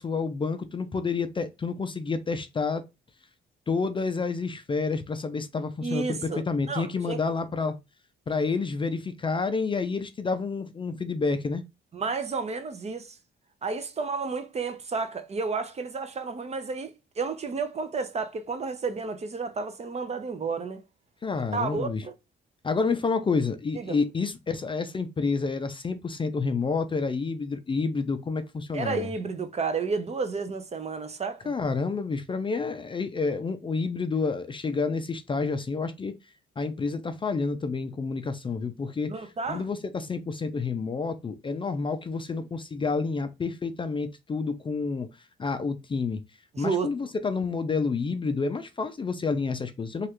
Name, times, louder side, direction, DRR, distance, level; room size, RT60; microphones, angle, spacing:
voice 1, 0.0-2.8 3.7-7.8 8.3-11.6 21.2-22.0 22.6-29.1 31.5-36.1 36.6-39.1 39.5-45.1 45.4-46.2 46.6-50.1, left 4 dB, 25° left, 0.4 m, -29 dB
voice 2, 5.8-7.2 11.9-13.2 13.6-20.8 21.5-22.1 23.7-24.0 28.7-31.5 39.1-39.7 46.5-46.9, right 4 dB, 35° right, 0.6 m, -31 dB
3.1 x 2.4 x 2.9 m
cardioid pair, 90°, 20 cm